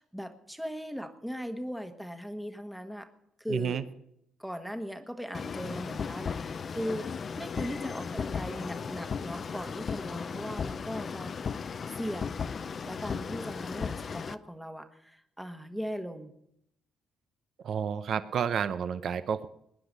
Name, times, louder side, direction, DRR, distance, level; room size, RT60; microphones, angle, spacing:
voice 1, 0.0-3.1 3.4-3.8 4.4-7.1 7.4-11.6 11.9-12.4 12.8-16.3, equal, ahead, 7 dB, 1.2 m, -38 dB
voice 2, 3.5-3.8 17.6-19.5, right 7 dB, 60° right, 13 dB, 0.7 m, -30 dB
sound 1, 5.3-14.3, left 6 dB, 45° left, 0.5 m, -36 dB
20.0 x 10.0 x 5.4 m, 0.77 s
cardioid pair, 90°, 0 cm